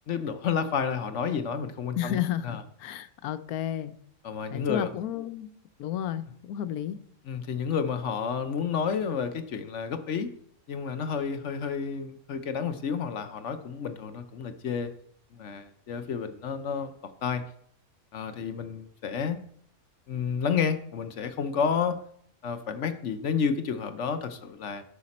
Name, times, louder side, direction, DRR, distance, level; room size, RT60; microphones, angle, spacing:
voice 1, 0.1-2.6 4.2-4.9 7.3-10.3 10.7-14.9 15.3-16.9 17.2-17.4 18.1-19.4 20.1-22.0 22.4-24.8, left 6 dB, 60° left, 9 dB, 0.9 m, -30 dB
voice 2, 2.0-3.9 4.5-5.5 5.8-7.0, left 10 dB, 90° left, 13 dB, 1.1 m, -32 dB
13.0 x 5.8 x 4.2 m, 0.65 s
omnidirectional pair, 1.5 m